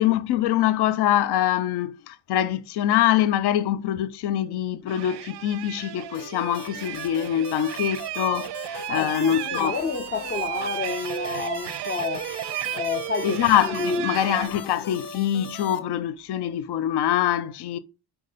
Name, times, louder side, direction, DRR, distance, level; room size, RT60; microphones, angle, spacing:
voice 1, 0.0-9.7 13.2-17.8, left 11 dB, 75° left, 0.7 m, -24 dB
sound 1, 4.9-14.5, right 14 dB, 90° right, 0.6 m, -33 dB
sound 2, 6.1-15.8, left 5 dB, 55° left, 1.6 m, -40 dB
voice 2, 8.9-12.4 12.7-14.2, left 4 dB, 30° left, 0.4 m, -29 dB
6.3 x 5.5 x 5.0 m
cardioid pair, 155°, 40 cm